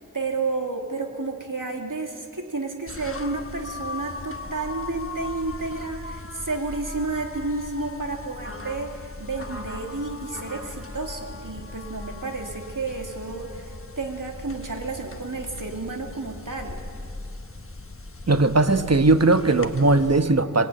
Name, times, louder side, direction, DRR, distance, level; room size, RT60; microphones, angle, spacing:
voice 1, 0.0-16.8, right 3 dB, 70° right, 2 dB, 2.8 m, -31 dB
sound 1, 2.9-20.2, left 2 dB, 40° left, 1.3 m, -38 dB
voice 2, 18.3-20.7, right 2 dB, 50° right, 9 dB, 1.2 m, -19 dB
26.0 x 18.0 x 9.2 m, 2.2 s
wide cardioid pair, 50°, 33 cm